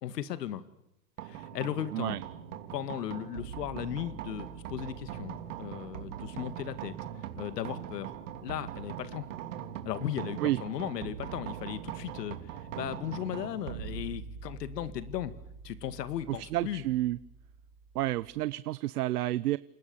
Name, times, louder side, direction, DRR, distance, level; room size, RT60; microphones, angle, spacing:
voice 1, 0.0-0.6 1.2-2.2 2.5-6.9 7.4-8.1 8.4-9.3 9.8-12.4 12.7-15.3 15.6-16.8, left 11 dB, 80° left, 12 dB, 2.2 m, -36 dB
sound 1, 1.2-18.4, right 9 dB, 50° right, 3.2 m, -42 dB
voice 2, 16.3-17.2 17.9-19.6, right 16 dB, 70° right, 16 dB, 1.0 m, -30 dB
28.5 x 28.0 x 7.2 m, 0.84 s
supercardioid pair, 170°, 48 cm